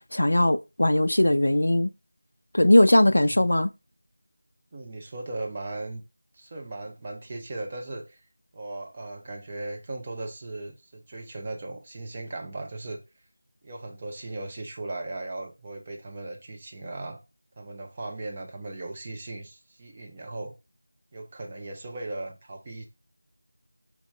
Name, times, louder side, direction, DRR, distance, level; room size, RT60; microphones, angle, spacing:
voice 1, 0.1-1.9 2.5-3.7, left 1 dB, 75° left, 0.4 m, -19 dB
voice 2, 3.1-3.4 4.7-6.0 6.3-8.2 8.5-13.0 13.6-17.2 17.6-20.5 21.1-22.8, right 2 dB, 20° right, 0.6 m, -37 dB
3.6 x 3.0 x 4.1 m
figure-of-eight pair, 175°, 0 cm